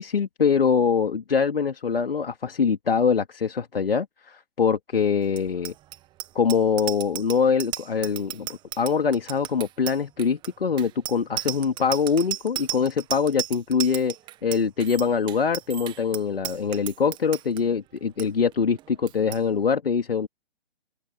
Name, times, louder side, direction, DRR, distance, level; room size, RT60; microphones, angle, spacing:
voice 1, 0.0-5.7 6.3-14.1 14.4-20.3, left 6 dB, 60° left, 3.0 m, -24 dB
Bicycle bell, 5.3-17.6 18.0-18.3 18.5-18.8 19.1-19.4, right 14 dB, 15° right, 1.5 m, -34 dB
open air
figure-of-eight pair, 135°, 32 cm